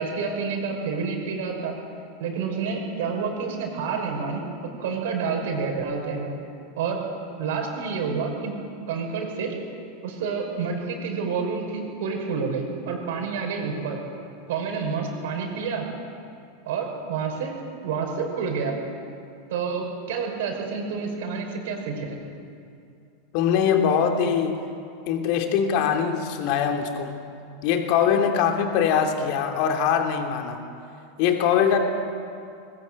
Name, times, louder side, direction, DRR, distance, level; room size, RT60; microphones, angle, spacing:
voice 1, 0.0-1.7 2.2-4.4 4.8-6.3 6.8-7.0 7.4-8.5 8.9-9.6 10.0-14.0 14.5-15.9 16.7-17.5 17.8-18.8 19.5-22.2, right 5 dB, 60° right, 2 dB, 5.5 m, -28 dB
voice 2, 23.3-24.6 25.1-27.2 27.6-30.6 31.2-31.8, left 8 dB, 50° left, 4 dB, 2.9 m, -22 dB
21.5 x 21.0 x 8.3 m, 2.5 s
figure-of-eight pair, 85°, 0 cm